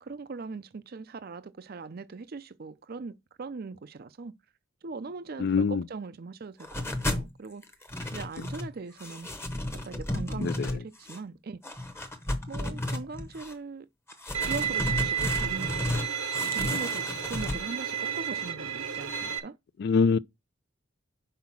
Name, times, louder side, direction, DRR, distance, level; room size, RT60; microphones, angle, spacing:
voice 1, 0.0-4.3 4.8-7.6 8.1-9.3 9.7-11.6 12.5-13.9 14.4-16.0 16.5-19.6, right 4 dB, 45° right, 0.5 m, -40 dB
voice 2, 5.4-5.8 10.4-10.7 19.8-20.2, left 5 dB, 55° left, 0.3 m, -24 dB
sound 1, 6.6-7.3 7.6-8.7 9.0-11.2 11.6-13.5 14.1-16.1 16.3-17.6, left 1 dB, 10° left, 0.8 m, -33 dB
Bowed string instrument, 14.3-19.4, right 8 dB, 75° right, 1.0 m, -31 dB
5.7 x 4.7 x 5.9 m
head